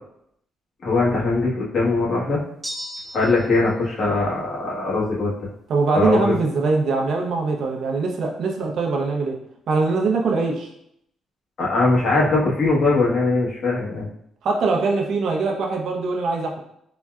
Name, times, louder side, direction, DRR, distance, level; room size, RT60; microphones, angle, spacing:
voice 1, 0.8-2.4 3.1-5.3 5.9-6.3 11.6-14.1, left 3 dB, 60° left, -5 dB, 1.1 m, -21 dB
sound 1, 2.6-3.6, equal, 5° right, 0.3 m, -34 dB
voice 2, 5.7-9.4 9.7-10.7 14.4-16.6, right 4 dB, 70° right, 1 dB, 0.6 m, -22 dB
3.9 x 2.2 x 2.3 m, 0.74 s
cardioid pair, 90°, 0 cm